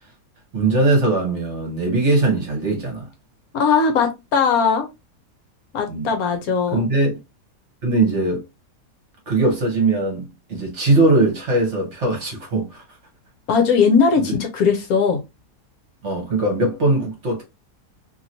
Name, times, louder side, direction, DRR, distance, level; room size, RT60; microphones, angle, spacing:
voice 1, 0.5-3.1 5.9-6.1 6.7-7.1 7.8-8.4 9.3-12.8 16.0-17.4, right 2 dB, 50° right, 1.2 m, -20 dB
voice 2, 3.5-4.9 5.7-6.9 13.5-15.2, left 5 dB, 70° left, 1.1 m, -19 dB
2.9 x 2.9 x 2.6 m
omnidirectional pair, 1.7 m